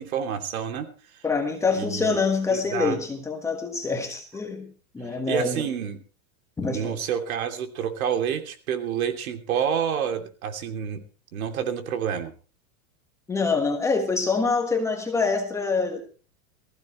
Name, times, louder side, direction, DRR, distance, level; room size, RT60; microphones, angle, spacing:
voice 1, 0.0-1.2 1.7-2.2 2.5-3.0 5.0-6.0 6.6-11.0 11.3-12.3, right 8 dB, 75° right, 3.0 m, -29 dB
voice 2, 1.2-4.7 4.9-5.7 6.6-7.0 13.3-16.0, left 4 dB, 5° left, 1.5 m, -25 dB
20.5 x 15.0 x 3.1 m
supercardioid pair, 175°, 42 cm